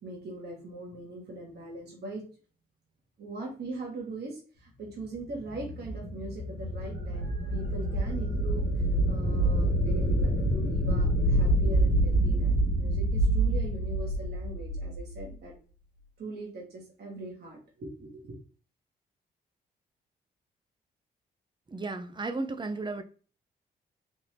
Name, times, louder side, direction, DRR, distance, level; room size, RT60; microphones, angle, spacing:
voice 1, 0.0-2.2 3.2-8.6 9.0-15.5 16.2-18.3, right 2 dB, 65° right, 1.8 m, -41 dB
sound 1, 5.2-15.3, right 1 dB, 85° left, 1.2 m, -27 dB
voice 2, 21.7-23.0, right 3 dB, 25° right, 0.7 m, -34 dB
4.1 x 2.8 x 3.3 m
supercardioid pair, 60°, 18 cm